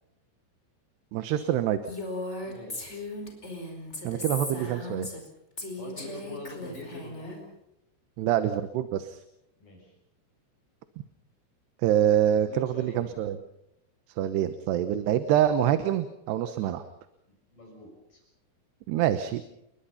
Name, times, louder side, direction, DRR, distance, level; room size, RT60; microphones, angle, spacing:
voice 1, 1.1-1.8 4.0-5.1 8.2-9.2 11.8-13.4 14.2-16.8 18.9-19.4, right 11 dB, 75° right, 11 dB, 3.0 m, -25 dB
Female speech woman speaking, 1.8-5.3 5.6-7.4, left 2 dB, 15° left, 4.8 m, -37 dB
voice 2, 2.4-3.0 5.8-7.5 9.6-9.9 12.5-13.2 16.5-16.7 17.3-18.2, left 2 dB, 50° left, 1 dB, 7.8 m, -44 dB
30.0 x 22.0 x 5.7 m, 0.81 s
omnidirectional pair, 5.1 m